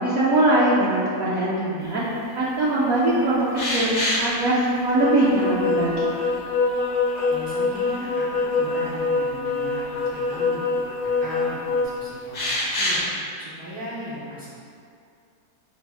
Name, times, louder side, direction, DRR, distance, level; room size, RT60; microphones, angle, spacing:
voice 1, 0.0-6.2, right 1 dB, 70° right, -7 dB, 1.0 m, -22 dB
sound 1, 3.5-4.4 5.9-6.0 6.9-7.7 8.1-8.2 10.1-10.2 12.3-13.0, left 1 dB, 45° left, 0.5 m, -25 dB
sound 2, 4.9-11.8, left 4 dB, 65° left, 0.9 m, -24 dB
voice 2, 7.3-10.7 11.0-12.4 12.7-13.0 13.4-14.5, equal, 40° right, -10 dB, 0.3 m, -36 dB
5.0 x 2.0 x 4.6 m, 2.4 s
omnidirectional pair, 1.6 m